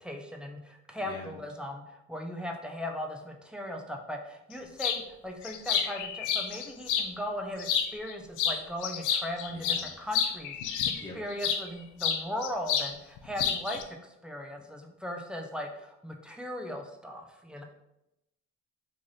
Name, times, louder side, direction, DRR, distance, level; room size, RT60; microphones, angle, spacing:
voice 1, 0.0-10.6 10.8-17.6, left 1 dB, 5° right, 2 dB, 0.5 m, -38 dB
sound 1, 4.8-5.0 5.4-7.1 7.6-8.1 8.4-11.6 12.0-12.9 13.2-13.8, left 7 dB, 85° left, 0.5 m, -29 dB
voice 2, 9.5-9.8 11.0-11.1, left 2 dB, 15° left, -6 dB, 1.1 m, -43 dB
3.3 x 2.5 x 3.9 m, 0.88 s
cardioid pair, 90°, 30 cm